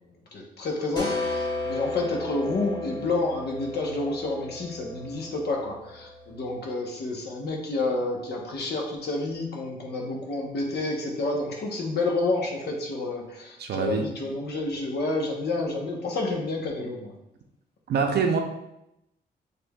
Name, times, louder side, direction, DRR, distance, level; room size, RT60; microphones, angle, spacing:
voice 1, 0.3-17.1, left 2 dB, 75° left, 0 dB, 0.9 m, -29 dB
sound 1, 1.0-6.4, left 2 dB, 25° left, 1.0 m, -34 dB
voice 2, 13.6-14.0 17.9-18.4, right 5 dB, 75° right, 3 dB, 0.5 m, -24 dB
6.6 x 3.3 x 2.3 m, 0.85 s
wide cardioid pair, 175°, 17 cm